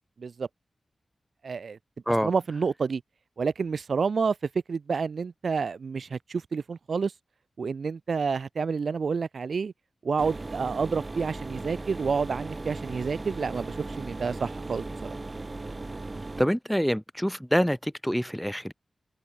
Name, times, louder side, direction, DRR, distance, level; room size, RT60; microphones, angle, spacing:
voice 1, 1.4-1.8 2.2-3.0 3.4-4.4 4.7-7.1 7.6-9.7 10.0-15.2, right 5 dB, 70° right, 0.5 m, -29 dB
sound 1, 10.2-16.4, right 2 dB, 30° right, 7.1 m, -37 dB
voice 2, 16.4-18.7, equal, ahead, 0.9 m, -26 dB
wide cardioid pair, 100°, 0 cm